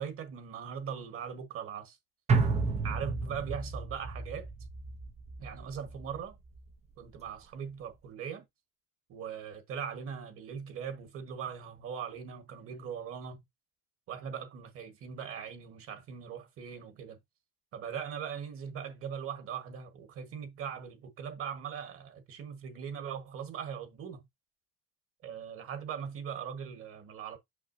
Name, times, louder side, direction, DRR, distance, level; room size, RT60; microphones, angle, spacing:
voice 1, 0.0-2.0 2.8-4.5 5.4-6.4 7.0-8.4 9.1-13.4 14.1-17.2 17.7-24.2 25.2-27.4, right 7 dB, 35° right, 1.5 m, -40 dB
sound 1, 2.3-6.7 7.1-7.2, right 4 dB, 20° right, 0.6 m, -32 dB
6.8 x 6.0 x 2.7 m
cardioid pair, 170°, 37 cm